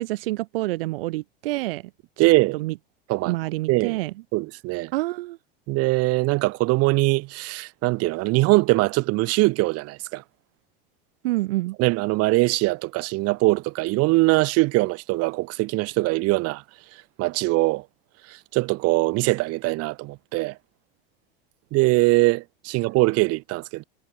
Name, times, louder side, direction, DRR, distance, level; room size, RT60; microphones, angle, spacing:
voice 1, 0.0-1.8 2.5-2.7 3.3-4.1 4.9-5.4 11.2-11.8, right 19 dB, 70° right, 3.5 m, -27 dB
voice 2, 2.2-2.6 3.1-3.3 3.7-4.0 4.3-4.9 5.7-10.2 11.8-16.6 17.2-17.8 18.3-20.6 21.7-23.8, right 22 dB, 55° right, 4.1 m, -22 dB
hypercardioid pair, 100°, 29 cm